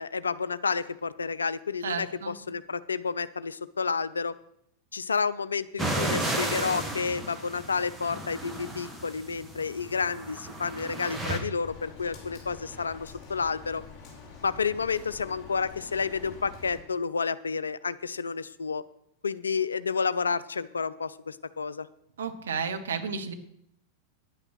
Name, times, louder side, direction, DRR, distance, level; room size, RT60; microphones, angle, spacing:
voice 1, 0.0-4.3 4.9-13.8 14.4-18.8 19.2-21.9, left 5 dB, 75° left, 16 dB, 0.4 m, -30 dB
voice 2, 1.8-2.4 22.2-23.3, right 6 dB, 65° right, 7 dB, 1.0 m, -32 dB
sound 1, 5.8-11.4, right 1 dB, 10° right, 1.9 m, -33 dB
Rain, 11.6-16.8, left 4 dB, 25° left, 5.7 m, -46 dB
10.0 x 8.8 x 6.1 m, 0.74 s
figure-of-eight pair, 90°, 0 cm